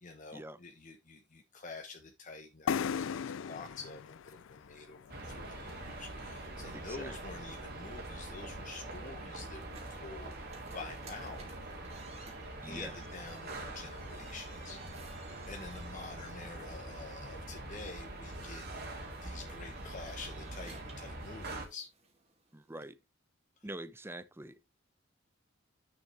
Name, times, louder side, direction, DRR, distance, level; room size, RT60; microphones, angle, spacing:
voice 1, 0.0-10.4 10.7-11.5 12.6-21.9 23.6-23.7, left 4 dB, 40° left, 1.1 m, -48 dB
sound 1, 2.7-6.3, left 7 dB, 70° left, 0.4 m, -38 dB
sound 2, 5.1-21.7, right 2 dB, 55° right, 2.8 m, -44 dB
voice 2, 6.7-7.1 12.6-13.0 22.5-23.0 23.6-24.7, right 1 dB, 10° right, 0.7 m, -44 dB
sound 3, 9.6-22.9, right 3 dB, 35° right, 2.4 m, -58 dB
9.7 x 6.6 x 3.4 m
head